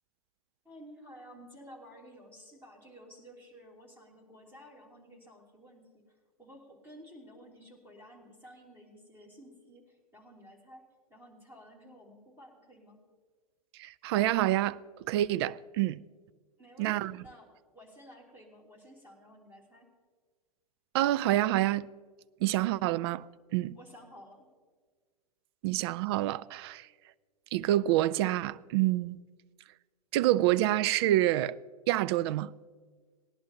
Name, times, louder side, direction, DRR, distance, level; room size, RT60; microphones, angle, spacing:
voice 1, 0.6-6.0 6.4-10.8 11.1-13.0 16.6-19.9 23.8-24.5, equal, 10° right, 3.1 m, -53 dB
voice 2, 13.8-14.8 15.1-16.0 16.8-17.1 20.9-21.9 22.4-23.3 23.5-23.8 25.6-26.9 27.5-29.2 30.1-31.6 31.9-32.5, right 15 dB, 45° right, 0.4 m, -27 dB
18.5 x 11.0 x 2.8 m
figure-of-eight pair, 105°, 19 cm